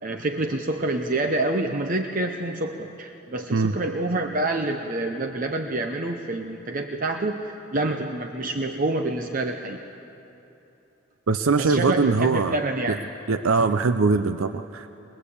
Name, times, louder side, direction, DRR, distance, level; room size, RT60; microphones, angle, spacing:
voice 1, 0.0-9.8 11.6-13.0, right 2 dB, 40° right, 4 dB, 0.8 m, -27 dB
voice 2, 11.3-12.6 12.9-13.0 13.3-14.9, right 4 dB, 80° right, 9 dB, 0.6 m, -22 dB
21.5 x 21.5 x 8.4 m, 3.0 s
head